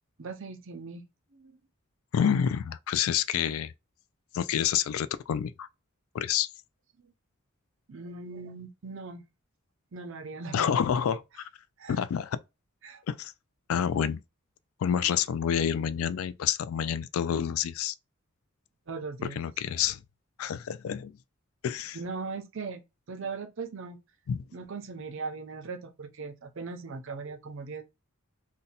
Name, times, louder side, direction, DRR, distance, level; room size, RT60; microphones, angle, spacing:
voice 1, 0.2-1.0 1.3-1.6 7.9-9.2 9.9-10.8 11.8-12.0 12.8-13.0 18.9-19.4 21.9-22.8 23.1-24.0 24.5-27.8, right 4 dB, 65° right, 0.6 m, -39 dB
voice 2, 2.1-3.7 4.3-5.7 6.1-6.5 10.5-11.5 11.9-12.4 13.1-13.3 13.7-14.2 14.8-17.9 19.2-20.0 20.4-21.2 21.6-22.0 24.3-24.4, left 8 dB, 90° left, 0.3 m, -28 dB
2.7 x 2.1 x 4.0 m
head